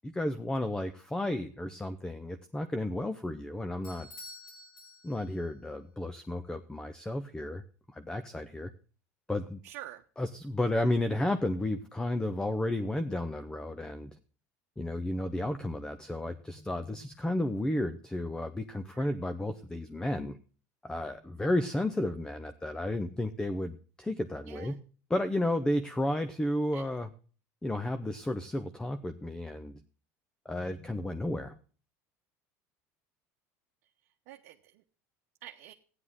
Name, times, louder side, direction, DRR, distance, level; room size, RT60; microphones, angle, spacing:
voice 1, 0.0-4.1 5.0-7.6 7.9-8.7 9.3-9.6 10.2-14.2 14.8-20.4 20.8-24.8 25.1-27.1 27.6-29.8 30.4-31.6, left 1 dB, 10° left, 9 dB, 0.8 m, -32 dB
Bell / Doorbell, 3.8-5.6, left 2 dB, 70° left, 3.8 m, -49 dB
voice 2, 9.6-10.0 18.9-19.1 24.4-24.8 26.7-26.8 34.3-34.8 35.4-35.7, right 14 dB, 75° right, 3 dB, 0.9 m, -47 dB
14.0 x 9.8 x 3.7 m, 0.39 s
supercardioid pair, 100°, 8 cm